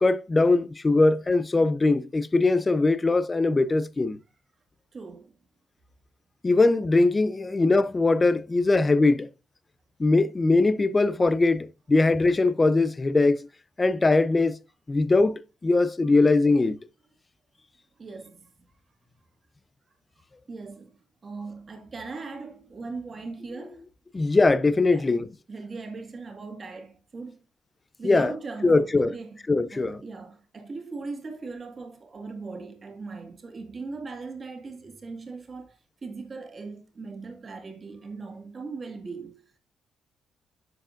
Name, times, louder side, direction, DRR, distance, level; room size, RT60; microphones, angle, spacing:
voice 1, 0.0-4.2 6.4-9.3 10.0-13.5 13.8-14.6 14.9-16.8 24.1-25.3 28.0-28.3 28.6-29.1 29.5-30.0, left 3 dB, 15° left, 0.5 m, -21 dB
voice 2, 4.9-5.3 18.0-18.5 20.5-23.9 24.9-27.4 28.0-29.4 29.7-39.6, right 4 dB, 25° right, 1.9 m, -39 dB
10.5 x 7.3 x 2.5 m
cardioid pair, 170°, 0 cm